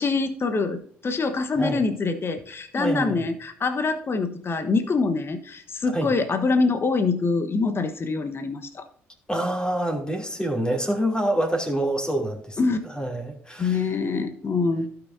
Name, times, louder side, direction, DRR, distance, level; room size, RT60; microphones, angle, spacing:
voice 1, 0.0-8.8 12.6-12.8 13.6-14.9, left 4 dB, 35° left, 8 dB, 1.2 m, -25 dB
voice 2, 2.7-3.2 5.9-6.1 9.3-12.6 12.9-13.9, right 1 dB, 10° left, 3 dB, 2.9 m, -26 dB
16.5 x 5.9 x 2.7 m, 0.63 s
figure-of-eight pair, 45°, 7 cm